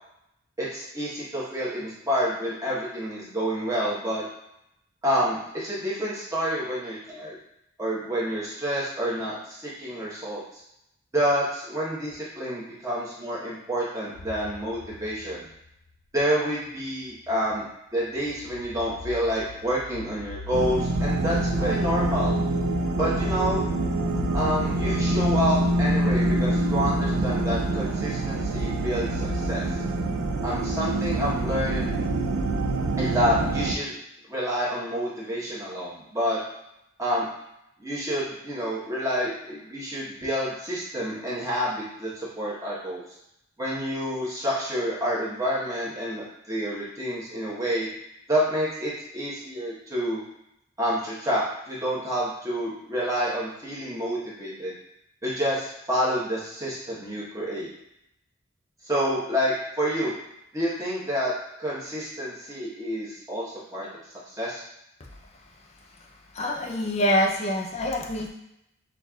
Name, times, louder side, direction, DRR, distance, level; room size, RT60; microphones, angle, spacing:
voice 1, 0.6-4.2 5.0-7.4 7.8-10.6 11.1-15.5 16.1-17.6 17.9-22.3 23.0-23.6 24.3-29.7 30.4-31.8 33.0-33.9 34.3-36.4 37.0-37.3 37.8-43.0 43.6-47.9 48.3-50.2 50.8-54.7 55.2-57.7 58.8-60.1 60.5-61.3 61.6-63.9 64.3-64.6, equal, 15° right, -7 dB, 1.1 m, -28 dB
sound 1, 14.1-15.9 17.1-17.6 18.1-30.1, left 2 dB, 85° left, 0.5 m, -41 dB
sound 2, 20.5-33.7, right 2 dB, 85° right, 0.4 m, -25 dB
voice 2, 66.3-68.3, equal, 30° left, 0 dB, 0.5 m, -25 dB
6.1 x 2.5 x 2.3 m, 0.81 s
head